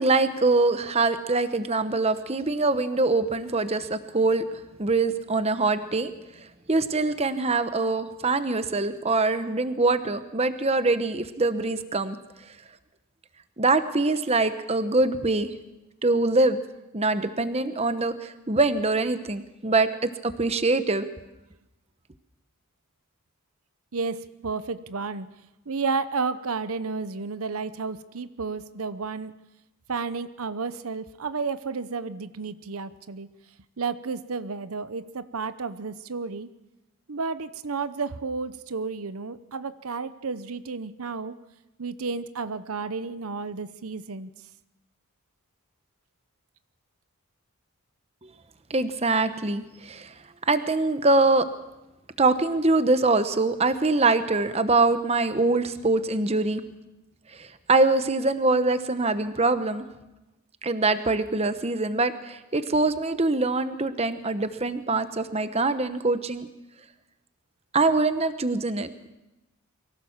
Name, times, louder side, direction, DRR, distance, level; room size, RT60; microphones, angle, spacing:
voice 1, 0.0-4.4 4.8-6.1 6.7-12.2 13.6-15.5 16.0-16.6 16.9-21.1 48.7-50.1 50.5-51.5 52.2-56.6 57.3-59.9 60.6-66.5 67.7-69.1, right 3 dB, 30° right, 11 dB, 1.0 m, -24 dB
voice 2, 23.9-25.3 25.7-29.3 29.9-33.3 33.8-36.5 37.1-41.4 41.8-44.3, right 4 dB, 80° right, 13 dB, 0.8 m, -32 dB
23.5 x 17.0 x 7.3 m, 0.98 s
head